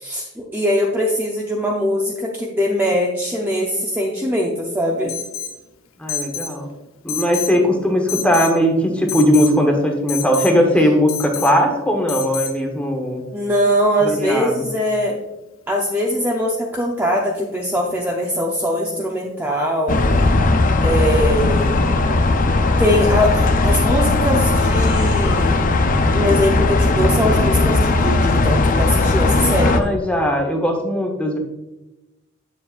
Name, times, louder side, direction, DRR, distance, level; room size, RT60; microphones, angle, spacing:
voice 1, 0.0-5.1 13.3-15.2 15.7-20.0 20.8-21.8 22.8-25.7 26.1-29.8, equal, 10° right, -3 dB, 0.6 m, -21 dB
Alarm, 5.1-5.6 6.1-6.5 7.1-7.6 8.1-8.6 9.1-9.6 10.1-10.5 11.1-11.5 12.1-12.5, left 7 dB, 75° left, 0.7 m, -28 dB
voice 2, 6.0-6.7 7.0-13.2 14.0-14.6 29.6-31.4, equal, 5° left, 2 dB, 1.0 m, -18 dB
sound 1, 19.9-29.8, left 2 dB, 40° left, 0.5 m, -17 dB
8.4 x 7.0 x 2.5 m, 1.0 s
head